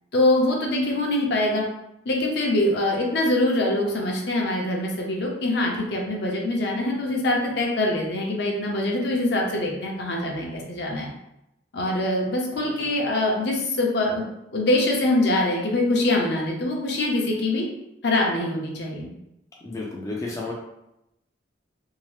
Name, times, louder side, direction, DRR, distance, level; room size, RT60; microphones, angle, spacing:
voice 1, 0.1-1.6 2.1-11.1 11.7-14.2 14.5-17.6 18.0-19.1, left 1 dB, 65° left, -1 dB, 0.6 m, -24 dB
voice 2, 19.6-20.5, left 2 dB, 20° left, -3 dB, 0.3 m, -32 dB
2.7 x 2.0 x 3.1 m, 0.87 s
head